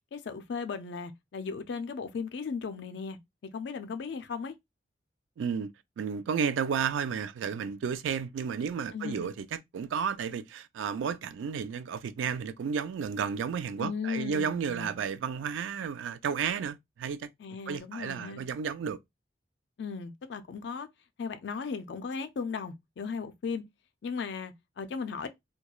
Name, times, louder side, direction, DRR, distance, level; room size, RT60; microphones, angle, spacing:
voice 1, 0.1-3.2 3.5-4.5 8.9-9.3 13.8-15.0 17.4-18.4 19.8-20.9 21.2-23.6 24.0-25.3, left 5 dB, 65° left, 0.4 m, -36 dB
voice 2, 5.4-5.7 6.0-9.5 9.7-17.3 17.7-19.0, right 7 dB, 80° right, 0.3 m, -32 dB
2.9 x 2.2 x 2.3 m
head